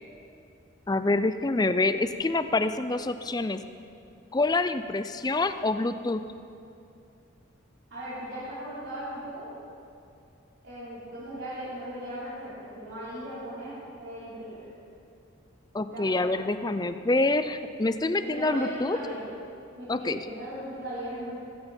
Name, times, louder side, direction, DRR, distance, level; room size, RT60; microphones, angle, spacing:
voice 1, 0.9-3.6 4.3-6.2 15.7-19.0 19.9-20.2, left 2 dB, 20° left, 11 dB, 0.5 m, -26 dB
voice 2, 7.9-9.5 10.6-14.7 15.9-16.3 18.2-19.3 19.7-21.4, equal, 70° right, -12 dB, 4.3 m, -38 dB
16.5 x 16.0 x 4.5 m, 2.6 s
head